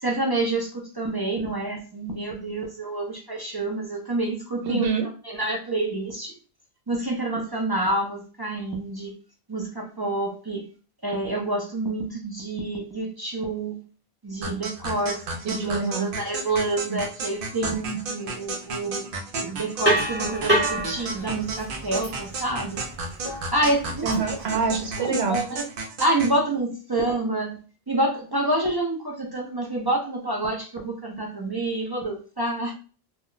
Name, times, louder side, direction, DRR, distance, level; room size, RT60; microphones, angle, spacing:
voice 1, 0.0-4.9 5.2-6.4 6.9-9.1 9.5-10.7 11.0-13.8 14.2-19.0 19.4-22.8 23.5-24.1 25.0-25.6 26.0-27.6 27.9-32.7, right 2 dB, 35° right, -1 dB, 0.4 m, -28 dB
voice 2, 4.6-5.1 15.4-16.1 16.9-17.0 24.0-25.4, right 5 dB, 80° right, 4 dB, 1.0 m, -26 dB
sound 1, 14.4-26.4, right 3 dB, 60° right, 0.7 m, -33 dB
sound 2, 19.8-24.9, right 1 dB, 10° right, 1.0 m, -28 dB
2.3 x 2.1 x 3.8 m, 0.37 s
omnidirectional pair, 1.1 m